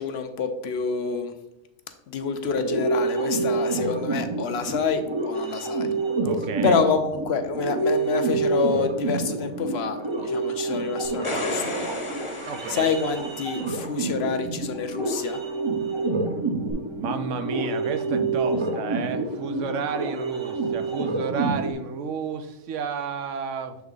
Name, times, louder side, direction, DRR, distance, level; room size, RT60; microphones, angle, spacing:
voice 1, 0.0-1.3 2.1-5.9 6.6-12.0 12.2-15.4, left 5 dB, 65° left, 8 dB, 0.7 m, -27 dB
sound 1, 2.4-21.7, right 3 dB, 30° right, 0.6 m, -28 dB
voice 2, 6.2-6.8 12.4-12.9 16.9-23.8, right 6 dB, 75° right, 8 dB, 0.9 m, -31 dB
sound 2, 11.0-13.6 16.7-16.8, left 1 dB, 30° left, 0.8 m, -32 dB
7.1 x 3.5 x 3.8 m, 0.90 s
omnidirectional pair, 1.3 m